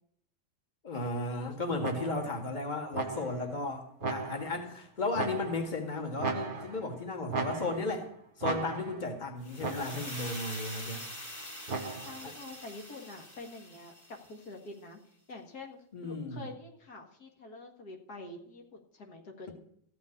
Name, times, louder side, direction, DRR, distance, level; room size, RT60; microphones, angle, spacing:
voice 1, 0.8-8.1 8.4-11.0 12.2-12.3 15.9-16.5, left 2 dB, 30° left, 3 dB, 2.0 m, -35 dB
sound 1, 1.8-2.4 2.9-3.5 4.0-4.7 5.1-5.8 6.2-6.9 7.3-8.0 8.4-9.1 9.6-10.2 11.7-12.3, right 4 dB, 35° right, 1.2 m, -36 dB
sound 2, 9.4-14.5, left 1 dB, 10° left, 2.5 m, -44 dB
voice 2, 12.0-15.0 15.3-18.6 18.9-19.5, left 2 dB, 70° left, 2 dB, 2.2 m, -46 dB
14.5 x 6.0 x 9.7 m, 0.68 s
omnidirectional pair, 1.7 m